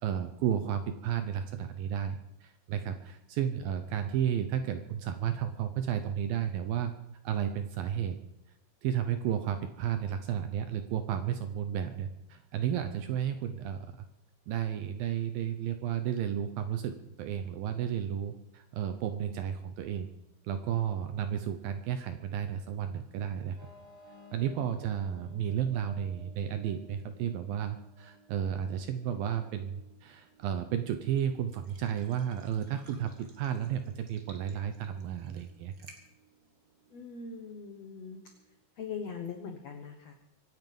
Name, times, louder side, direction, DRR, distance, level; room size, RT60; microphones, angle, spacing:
voice 1, 0.0-6.9 7.2-8.2 8.8-13.8 14.5-20.1 20.4-23.6 24.3-35.7, right 9 dB, 75° right, 8 dB, 2.2 m, -33 dB
sound 1, 23.6-39.0, equal, 20° right, 4.3 m, -59 dB
voice 2, 24.5-25.2 36.9-38.2 38.8-40.2, left 6 dB, 85° left, 4 dB, 1.4 m, -42 dB
sound 2, 29.0-37.5, right 3 dB, 60° right, 0.9 m, -61 dB
25.0 x 9.1 x 5.4 m, 0.88 s
omnidirectional pair, 4.9 m